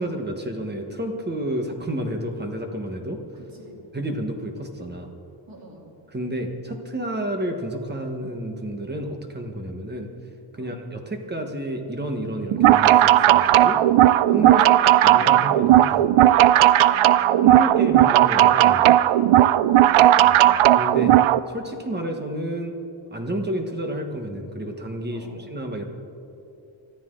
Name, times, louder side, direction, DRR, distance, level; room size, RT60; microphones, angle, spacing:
voice 1, 0.0-3.2 3.9-5.1 6.1-10.1 10.5-13.8 14.3-14.7 15.0-16.1 17.4-19.0 20.2-20.4 20.7-21.2 21.5-22.7 23.1-25.8, right 1 dB, 20° right, 4 dB, 1.4 m, -30 dB
voice 2, 3.6-4.1 5.5-5.9 10.6-10.8 14.5-15.6 16.8-17.8 19.7-20.7 25.1-25.3, right 1 dB, 45° right, -2 dB, 3.5 m, -45 dB
sound 1, 12.5-21.4, right 13 dB, 75° right, 0.5 m, -16 dB
25.0 x 13.0 x 3.8 m, 2.7 s
wide cardioid pair, 165°, 49 cm